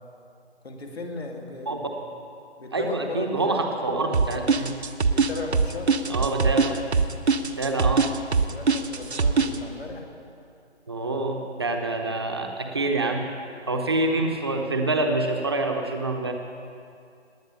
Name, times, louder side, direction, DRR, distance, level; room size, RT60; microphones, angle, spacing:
voice 1, 0.6-1.8 2.6-3.3 5.1-5.9 7.8-7.9 8.5-10.1, left 3 dB, 60° left, 1 dB, 2.6 m, -36 dB
voice 2, 2.7-4.7 6.1-6.8 7.6-8.1 10.9-16.3, right 2 dB, 20° right, 3 dB, 1.0 m, -26 dB
sound 1, 4.1-9.6, right 5 dB, 70° right, 1.1 m, -21 dB
19.0 x 9.8 x 6.9 m, 2.4 s
figure-of-eight pair, 170°, 34 cm